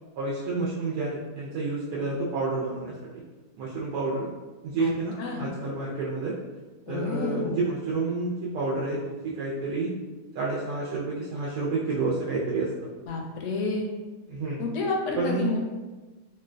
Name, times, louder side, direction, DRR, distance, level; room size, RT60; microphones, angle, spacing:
voice 1, 0.2-3.2 3.6-4.3 4.6-6.4 6.9-9.9 10.3-12.9 14.3-14.6 15.2-15.5, right 3 dB, 85° right, -5 dB, 1.1 m, -29 dB
voice 2, 6.9-7.6 13.1-13.9 14.6-15.6, left 3 dB, 70° left, 1 dB, 0.8 m, -29 dB
3.8 x 2.1 x 2.5 m, 1.2 s
omnidirectional pair, 1.7 m